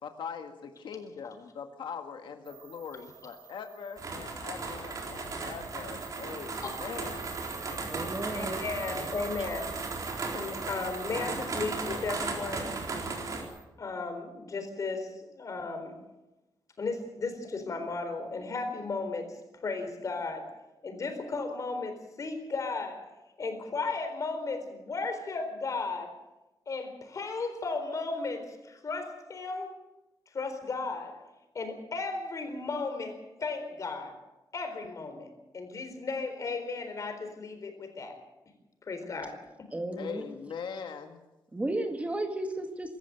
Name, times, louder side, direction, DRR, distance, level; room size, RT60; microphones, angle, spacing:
voice 1, 0.0-7.3 40.0-41.2, left 6 dB, 75° left, 5 dB, 1.8 m, -41 dB
sound 1, 2.4-13.6, right 8 dB, 80° right, 4.7 m, -47 dB
sound 2, 4.0-13.4, right 3 dB, 45° right, 4.1 m, -36 dB
voice 2, 7.8-8.6 39.7-40.2 41.5-43.0, right 1 dB, 15° right, 5 dB, 1.9 m, -33 dB
voice 3, 8.3-9.7 10.2-12.7 13.8-16.0 16.8-20.5 20.8-23.1 23.4-26.2 26.7-29.7 30.3-31.2 31.5-34.2 34.5-38.2 38.9-39.7, left 3 dB, 40° left, 6 dB, 4.2 m, -35 dB
24.0 x 14.0 x 7.9 m, 1.0 s
wide cardioid pair, 165°, 8 cm